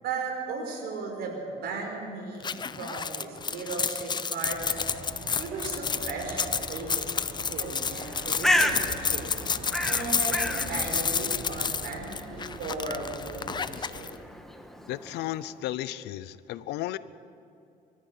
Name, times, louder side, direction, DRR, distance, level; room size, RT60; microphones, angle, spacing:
voice 1, 0.0-4.8 5.4-7.2 7.5-9.2 9.9-14.1, right 3 dB, 70° right, 1 dB, 5.5 m, -36 dB
sound 1, 2.4-14.1, left 6 dB, 25° left, 0.6 m, -30 dB
sound 2, 4.5-14.0, right 2 dB, 45° right, 5.9 m, -43 dB
Bird, 8.0-15.6, left 1 dB, ahead, 1.5 m, -33 dB
voice 2, 14.9-17.0, left 14 dB, 85° left, 17 dB, 0.7 m, -34 dB
23.5 x 14.0 x 8.5 m, 2.6 s
cardioid pair, 110°, 17 cm